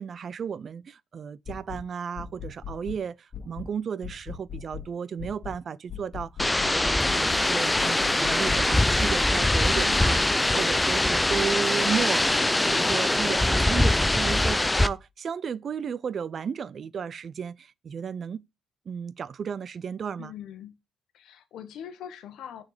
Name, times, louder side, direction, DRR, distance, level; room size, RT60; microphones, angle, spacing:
voice 1, 0.0-12.4 12.6-18.4 18.9-20.3, right 7 dB, 50° right, 0.4 m, -34 dB
sound 1, 1.5-1.9 2.2-3.0 3.3-3.7 4.0-4.9 5.2-5.6 5.9-6.8 7.1-7.5 7.8-8.9, left 8 dB, 35° left, 2.1 m, -39 dB
sound 2, 6.4-14.9, left 1 dB, 10° left, 0.5 m, -23 dB
voice 2, 9.7-10.1 20.2-20.7 21.1-22.6, left 9 dB, 80° left, 1.1 m, -41 dB
6.8 x 4.2 x 4.9 m
cardioid pair, 90°, 0 cm